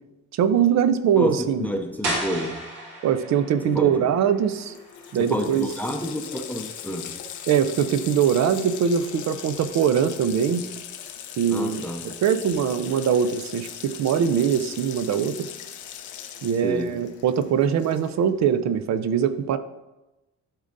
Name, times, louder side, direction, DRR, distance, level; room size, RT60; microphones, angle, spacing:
voice 1, 0.3-1.7 3.0-4.7 5.1-5.7 7.5-10.6 11.4-15.5 16.4-19.6, right 8 dB, 65° right, 12 dB, 0.6 m, -22 dB
voice 2, 1.2-2.6 3.6-4.1 5.2-7.1 11.5-12.1 16.6-16.9, equal, 5° left, 4 dB, 0.6 m, -29 dB
sound 1, 2.0-7.7, right 1 dB, 85° right, 1.9 m, -36 dB
Water tap faucet, 4.2-4.3 4.5-18.3, left 9 dB, 75° left, 0.7 m, -39 dB
11.5 x 4.0 x 2.6 m, 1.0 s
cardioid pair, 90°, 30 cm